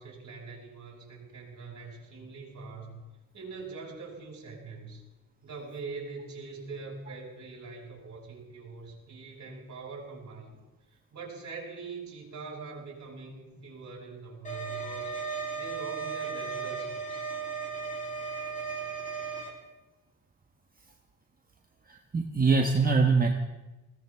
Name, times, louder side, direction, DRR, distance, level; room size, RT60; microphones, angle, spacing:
voice 1, 0.0-3.0 3.3-5.0 5.4-10.6 11.1-15.2 15.5-17.3, right 4 dB, 50° right, -1 dB, 6.0 m, -43 dB
sound 1, 14.4-19.5, right 5 dB, 20° left, 5.5 m, -35 dB
voice 2, 21.9-23.3, right 4 dB, 25° right, 2 dB, 1.4 m, -23 dB
20.5 x 18.0 x 3.6 m, 1.1 s
cardioid pair, 100°, 37 cm